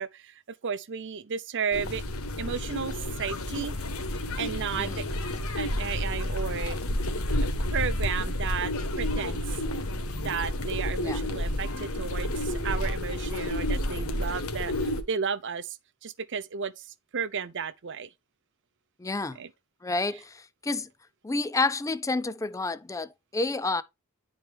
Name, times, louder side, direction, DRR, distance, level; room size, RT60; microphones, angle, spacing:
voice 1, 0.0-2.0 2.4-3.8 4.4-5.0 5.6-6.8 7.4-9.4 10.2-15.8 16.0-16.9 17.1-18.1 19.4-19.5, right 6 dB, 60° right, 0.7 m, -33 dB
sound 1, 1.7-15.0, left 1 dB, 85° left, 1.3 m, -30 dB
voice 2, 19.0-19.4 19.8-20.9 21.2-23.8, left 3 dB, 15° left, 0.4 m, -29 dB
10.5 x 4.5 x 3.4 m
head